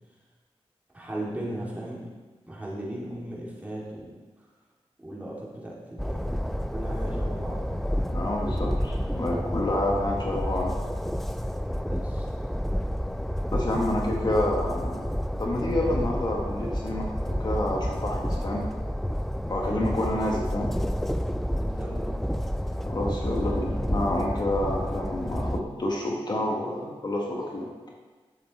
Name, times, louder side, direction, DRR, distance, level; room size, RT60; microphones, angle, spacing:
voice 1, 0.9-2.1 2.5-4.1 5.0-7.8 11.9-12.3 21.5-22.2, right 1 dB, 15° right, -6 dB, 2.6 m, -37 dB
Train, 6.0-25.6, equal, ahead, 0.4 m, -30 dB
voice 2, 8.1-10.8 13.5-15.1 15.4-18.6 19.5-20.7 22.8-27.7, left 1 dB, 40° left, -1 dB, 1.2 m, -28 dB
11.0 x 7.0 x 4.3 m, 1.3 s
wide cardioid pair, 135°, 11 cm